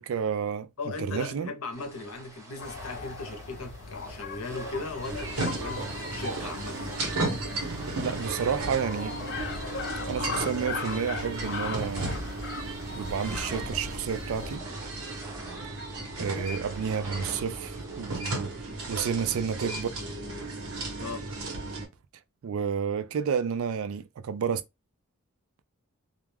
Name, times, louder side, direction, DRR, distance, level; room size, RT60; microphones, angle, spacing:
voice 1, 0.0-1.5 8.0-9.2 10.1-12.2 13.0-14.6 16.2-19.9 22.4-24.6, right 7 dB, 65° right, 0.3 m, -30 dB
voice 2, 0.8-6.9 16.3-16.5 21.0-21.3, left 3 dB, 80° left, 0.7 m, -38 dB
sound 1, 1.7-18.2, right 3 dB, 15° right, 0.6 m, -46 dB
sound 2, 2.6-14.6, left 5 dB, 55° left, 0.4 m, -39 dB
sound 3, 5.0-21.9, right 2 dB, 80° right, 1.0 m, -35 dB
2.4 x 2.2 x 3.1 m
head